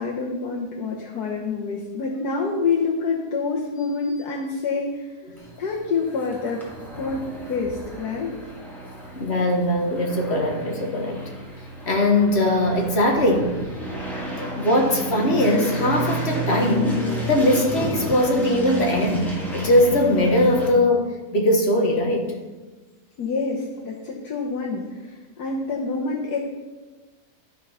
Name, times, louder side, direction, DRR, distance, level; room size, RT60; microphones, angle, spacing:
voice 1, 0.0-5.0 5.6-6.6 7.0-8.3 23.2-26.4, left 4 dB, 85° left, -3 dB, 1.6 m, -27 dB
sound 1, 5.4-20.7, right 1 dB, ahead, 2.2 m, -32 dB
voice 2, 9.1-11.2 11.9-13.5 14.2-22.3, left 1 dB, 45° left, 2 dB, 1.5 m, -20 dB
12.5 x 4.7 x 5.6 m, 1.2 s
omnidirectional pair, 1.6 m